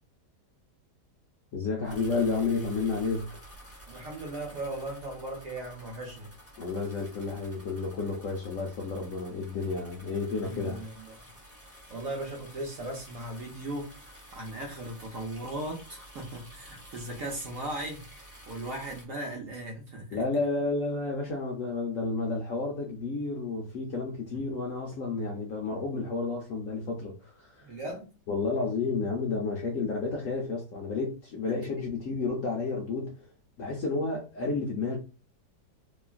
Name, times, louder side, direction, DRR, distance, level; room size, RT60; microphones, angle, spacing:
voice 1, 1.5-3.4 6.6-10.8 20.1-27.7 28.3-33.3 33.6-35.0, left 3 dB, 70° left, 0.7 m, -31 dB
sound 1, 1.8-19.0, right 1 dB, 20° left, 0.4 m, -51 dB
voice 2, 3.9-6.3 10.4-11.3 11.9-20.2 24.3-24.4 27.6-28.1, right 1 dB, 65° right, 0.9 m, -38 dB
3.0 x 2.3 x 2.4 m
omnidirectional pair, 1.9 m